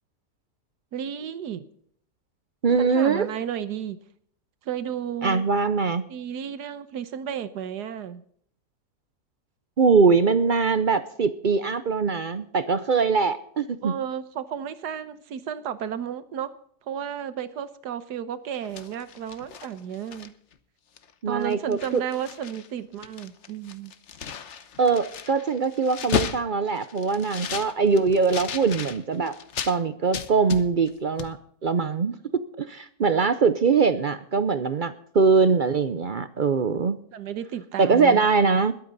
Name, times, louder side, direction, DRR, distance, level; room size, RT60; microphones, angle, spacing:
voice 1, 0.9-1.6 2.8-4.0 4.6-5.4 6.1-8.2 13.8-16.5 16.9-20.3 21.3-23.9 37.1-38.2, right 9 dB, 85° right, 13 dB, 1.5 m, -33 dB
voice 2, 2.6-3.3 5.2-6.0 9.8-13.9 21.2-22.0 24.8-29.3 29.7-31.4 31.6-32.2 32.6-37.0 37.8-38.7, right 5 dB, 60° right, 12 dB, 0.5 m, -22 dB
sound 1, 18.5-20.5 21.0-21.1 21.4-22.7 22.9-29.8 30.1-30.9 31.2-31.3, left 6 dB, 50° left, 1.1 m, -34 dB
21.5 x 8.7 x 4.0 m, 0.62 s
omnidirectional pair, 1.7 m